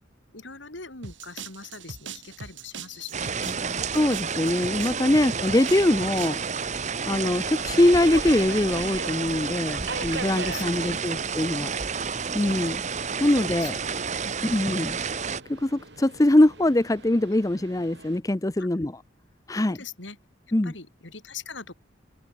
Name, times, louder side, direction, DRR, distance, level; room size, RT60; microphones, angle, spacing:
voice 1, 0.3-3.9 5.1-5.2 6.8-6.9 9.7-11.0 13.6-14.6 18.6-18.7 19.5-20.2 20.6-21.7, left 5 dB, 75° left, 4.4 m, -43 dB
sound 1, 1.0-6.5, right 6 dB, 80° right, 2.4 m, -41 dB
sound 2, 3.1-15.4, right 5 dB, 40° right, 1.3 m, -30 dB
voice 2, 3.9-6.4 7.1-11.7 12.3-12.8 13.2-13.8 14.5-15.0 15.5-19.0 19.5-19.8 20.5-20.7, left 1 dB, 20° left, 0.6 m, -23 dB
Subway metro underground, 5.2-18.2, right 3 dB, 65° right, 6.8 m, -43 dB
open air
head